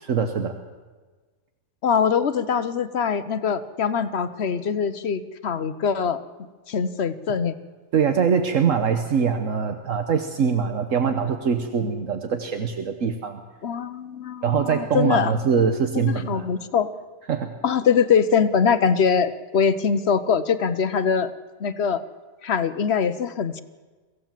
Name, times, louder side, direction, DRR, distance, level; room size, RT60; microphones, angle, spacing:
voice 1, 0.0-0.5 7.9-13.4 14.4-16.5 17.3-17.5, right 6 dB, 70° right, 7 dB, 1.5 m, -23 dB
voice 2, 1.8-6.2 6.7-7.5 13.6-15.3 15.9-16.9 17.6-21.3 21.6-22.0 22.4-23.6, left 6 dB, 55° left, 13 dB, 1.1 m, -23 dB
23.5 x 16.0 x 7.5 m, 1.4 s
omnidirectional pair, 1.4 m